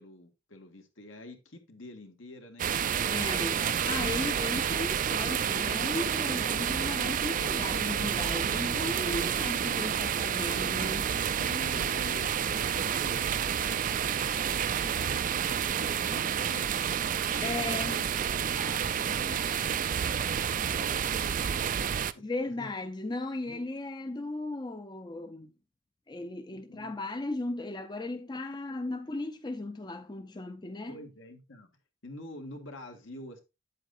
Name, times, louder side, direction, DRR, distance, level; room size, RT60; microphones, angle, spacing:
voice 1, 0.0-3.1 11.4-13.9 14.2-19.9 20.5-22.2 22.6-22.7 23.4-23.6 26.5-26.9 30.9-31.7 32.0-33.4, left 1 dB, 80° left, 1.8 m, -47 dB
sound 1, 2.6-22.1, right 8 dB, 40° right, 0.4 m, -29 dB
voice 2, 3.1-11.1 17.4-18.0 22.2-25.5 26.1-31.0, left 2 dB, 20° left, 0.5 m, -36 dB
9.0 x 7.7 x 2.6 m
head